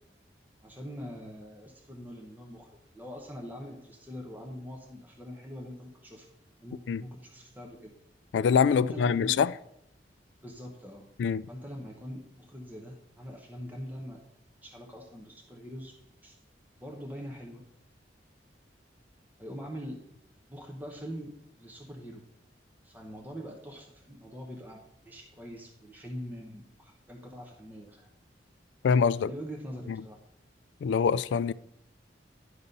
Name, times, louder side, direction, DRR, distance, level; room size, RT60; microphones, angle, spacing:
voice 1, 0.6-6.3 6.6-7.9 8.7-9.3 10.4-11.1 11.5-14.2 14.6-15.9 16.2-16.4 16.8-17.6 19.4-20.0 20.5-22.3 22.8-28.1 29.2-30.2, equal, 10° right, 0.9 m, -43 dB
voice 2, 8.3-9.5 11.2-11.5 28.8-29.3 29.9-30.0 30.8-31.5, left 6 dB, 75° left, 0.3 m, -24 dB
11.5 x 4.1 x 5.3 m
head